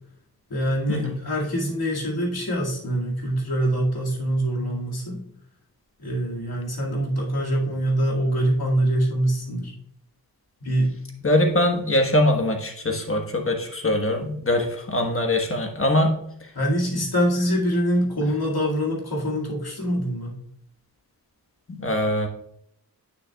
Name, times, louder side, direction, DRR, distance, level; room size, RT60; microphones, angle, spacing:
voice 1, 0.5-5.2 6.0-9.7 10.6-11.0 16.6-20.3, right 1 dB, 75° left, -3 dB, 2.2 m, -24 dB
voice 2, 11.2-16.1 21.7-22.3, left 1 dB, 35° left, 3 dB, 1.3 m, -22 dB
9.4 x 6.5 x 2.3 m, 0.72 s
wide cardioid pair, 95°, 37 cm